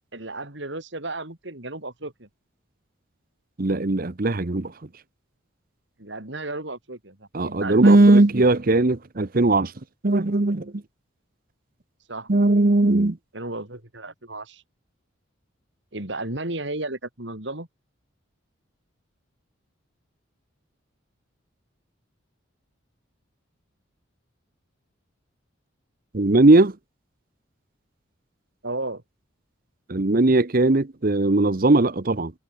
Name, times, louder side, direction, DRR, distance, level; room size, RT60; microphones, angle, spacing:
voice 1, 0.1-2.3 6.0-8.1 12.1-12.3 13.3-14.6 15.9-17.7 28.6-29.0, right 2 dB, 60° right, 3.5 m, -33 dB
voice 2, 3.6-4.7 7.3-9.7 10.0-10.7 12.3-13.2 26.1-26.7 29.9-32.3, right 2 dB, 45° right, 0.9 m, -18 dB
head